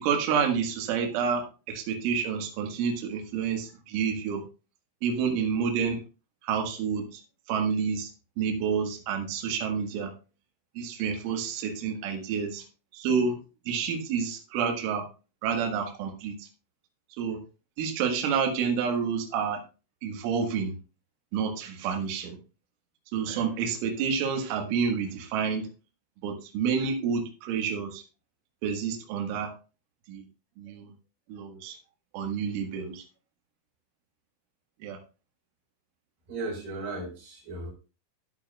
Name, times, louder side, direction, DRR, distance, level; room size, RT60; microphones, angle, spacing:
voice 1, 0.0-4.4 5.0-6.0 6.4-7.2 7.5-8.1 8.4-10.1 10.8-12.7 12.9-13.4 13.7-15.1 15.4-16.5 17.2-17.4 17.8-19.6 20.0-20.7 21.3-22.4 23.1-25.7 26.2-28.0 28.6-29.5 30.1-30.2 30.6-30.9 31.3-31.8 32.1-33.0 34.8-35.0, right 6 dB, 75° right, 3 dB, 3.8 m, -29 dB
voice 2, 36.3-37.7, right 2 dB, 45° right, -1 dB, 5.8 m, -36 dB
14.0 x 8.1 x 2.3 m, 0.33 s
omnidirectional pair, 6.0 m